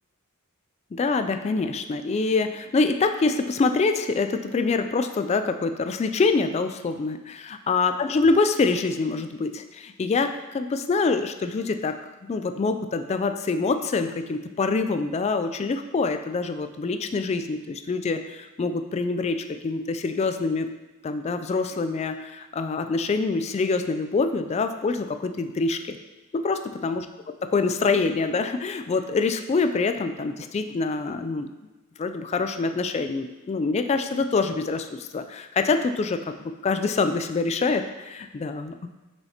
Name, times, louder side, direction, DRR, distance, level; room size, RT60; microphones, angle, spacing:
voice 1, 0.9-20.7 21.0-26.0 26.3-27.1 27.4-31.5 32.0-38.9, left 4 dB, 30° left, 8 dB, 0.3 m, -25 dB
7.3 x 6.4 x 2.8 m, 1.1 s
head